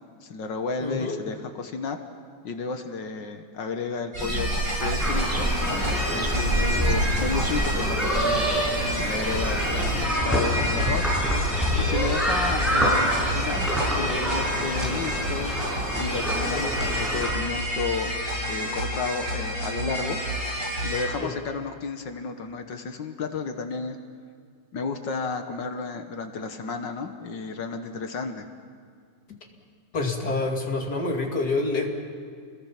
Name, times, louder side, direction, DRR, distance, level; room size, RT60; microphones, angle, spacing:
voice 1, 0.2-2.0 2.4-4.5 4.8-8.6 8.9-18.1 18.5-20.2 20.8-24.0 24.7-28.5, left 4 dB, 80° left, 6 dB, 2.0 m, -32 dB
voice 2, 0.8-1.2 21.2-21.3 29.9-31.9, left 3 dB, 60° left, 1 dB, 3.1 m, -27 dB
sound 1, 4.1-21.1, equal, 80° right, 8.0 m, -29 dB
sound 2, 4.2-10.1, right 2 dB, 20° right, 0.6 m, -30 dB
sound 3, 5.0-17.3, equal, ahead, 7.1 m, -27 dB
29.5 x 21.5 x 5.9 m, 2.1 s
omnidirectional pair, 2.0 m